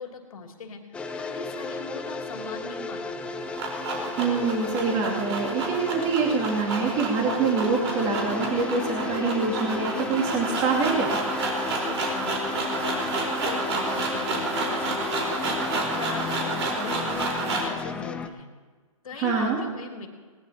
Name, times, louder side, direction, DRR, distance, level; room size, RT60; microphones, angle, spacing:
voice 1, 0.0-3.3 11.7-18.5 19.0-20.1, left 4 dB, 75° left, 2 dB, 3.0 m, -40 dB
sound 1, 0.9-18.3, left 4 dB, 5° left, 0.5 m, -34 dB
sound 2, 3.2-17.8, right 3 dB, 50° right, 4.3 m, -30 dB
voice 2, 4.2-11.2 19.1-19.6, right 4 dB, 25° right, -3 dB, 2.6 m, -25 dB
20.0 x 19.0 x 2.9 m, 1.4 s
hypercardioid pair, 150°, 18 cm